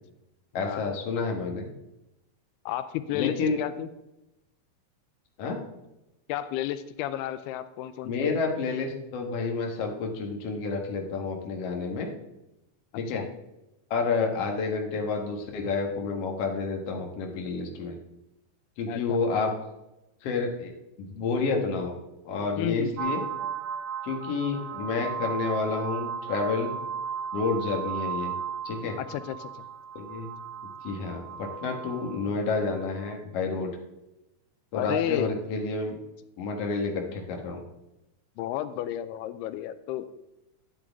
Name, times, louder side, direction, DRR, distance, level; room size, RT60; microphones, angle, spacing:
voice 1, 0.5-1.7 3.1-3.6 5.4-5.6 8.0-12.1 13.0-13.2 13.9-18.0 18.8-19.5 20.2-20.7 21.0-21.9 22.2-23.2 24.0-26.7 27.3-28.3 28.6-29.0 30.0-30.3 30.6-33.7 34.7-36.0 36.4-37.6, left 4 dB, 55° left, 1 dB, 2.0 m, -29 dB
voice 2, 2.7-3.9 6.3-8.4 13.1-13.3 18.9-19.2 22.6-22.9 29.0-29.7 34.7-35.3 38.4-40.1, left 12 dB, 90° left, 12 dB, 2.6 m, -32 dB
sound 1, 23.0-33.1, right 7 dB, 65° right, 1.3 m, -36 dB
12.5 x 9.1 x 3.5 m, 0.92 s
omnidirectional pair, 4.5 m